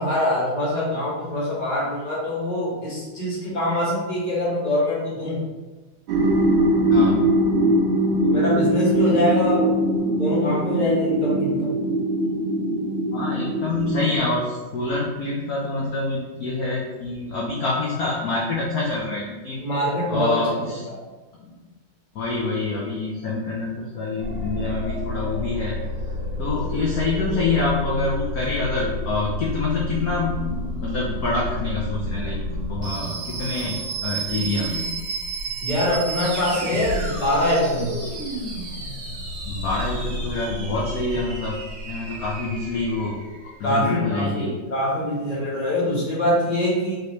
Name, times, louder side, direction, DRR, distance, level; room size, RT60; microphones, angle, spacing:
voice 1, 0.0-5.4 8.2-9.8 10.2-11.8 19.6-20.6 20.9-21.0 35.6-38.0 43.6-46.9, left 1 dB, 25° left, -7 dB, 1.4 m, -24 dB
sound 1, 6.1-14.2, right 1 dB, 80° right, 1.6 m, -21 dB
voice 2, 6.9-7.3 13.1-19.6 20.1-20.8 21.4-21.6 22.1-25.8 26.4-32.4 32.7-34.9 39.4-41.6 41.9-44.5, left 3 dB, 65° left, -4 dB, 0.9 m, -26 dB
sound 2, 24.2-43.5, equal, 55° right, 1.2 m, -30 dB
4.9 x 3.1 x 3.0 m, 1.2 s
omnidirectional pair, 2.2 m